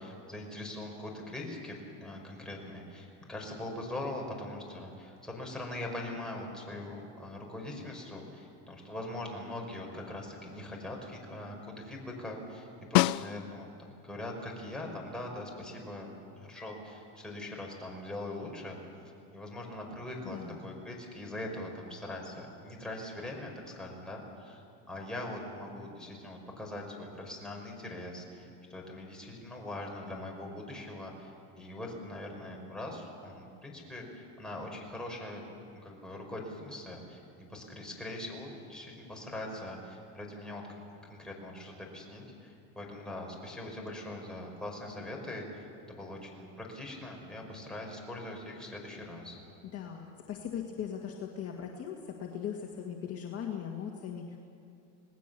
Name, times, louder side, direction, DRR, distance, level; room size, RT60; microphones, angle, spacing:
voice 1, 0.0-18.8 19.3-24.6 24.9-35.4 35.7-40.6 41.1-49.4, left 1 dB, ahead, -1 dB, 5.2 m, -42 dB
Snare drum, 13.0-13.9 18.3-18.4, left 19 dB, 80° left, 0.5 m, -27 dB
voice 2, 20.2-20.7 49.7-54.4, left 8 dB, 35° left, 1 dB, 1.9 m, -39 dB
27.5 x 19.0 x 7.0 m, 2.5 s
supercardioid pair, 120°, 40 cm